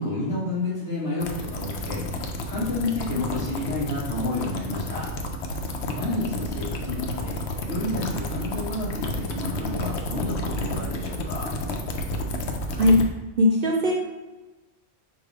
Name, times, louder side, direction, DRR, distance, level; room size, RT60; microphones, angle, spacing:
voice 1, 0.0-2.1 2.4-5.1 5.9-7.4 7.7-11.5, left 2 dB, 40° left, -11 dB, 1.7 m, -30 dB
sound 1, 1.2-13.0, left 1 dB, 75° left, 0.9 m, -31 dB
voice 2, 13.4-14.0, left 1 dB, 60° right, -1 dB, 0.7 m, -19 dB
5.3 x 2.1 x 4.6 m, 1.1 s
omnidirectional pair, 1.2 m